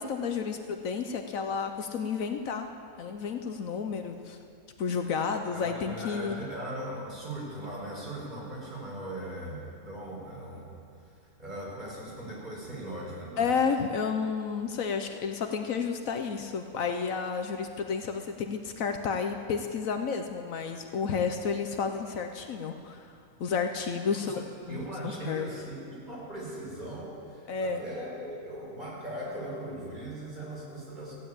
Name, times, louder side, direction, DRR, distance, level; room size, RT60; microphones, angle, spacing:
voice 1, 0.0-2.7 3.0-4.4 4.8-6.3 13.4-23.1 23.4-25.5 27.5-27.8, left 5 dB, 70° left, 6 dB, 1.2 m, -31 dB
voice 2, 5.5-11.1 11.4-13.5 24.2-31.1, right 1 dB, 30° right, -6 dB, 4.7 m, -39 dB
15.0 x 8.8 x 8.7 m, 2.4 s
omnidirectional pair, 1.5 m